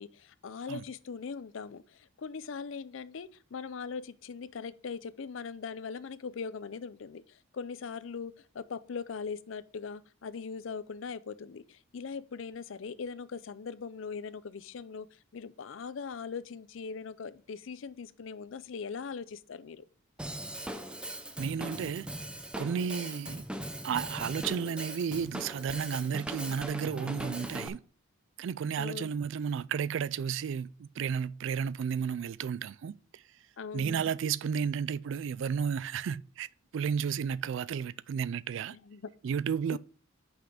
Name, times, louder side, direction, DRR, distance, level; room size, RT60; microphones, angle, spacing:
voice 1, 0.0-1.8 2.2-7.2 7.5-15.1 15.3-19.8 28.8-29.1 33.6-34.0 38.7-39.1 39.7-39.8, left 5 dB, 70° left, 0.5 m, -40 dB
Drum kit / Drum, 20.2-27.7, right 1 dB, 5° right, 0.6 m, -40 dB
voice 2, 21.4-22.1 22.6-23.4 23.8-27.8 28.4-33.2 33.7-36.5 36.7-38.8 39.2-39.8, right 7 dB, 65° right, 0.3 m, -32 dB
5.8 x 5.7 x 4.9 m
head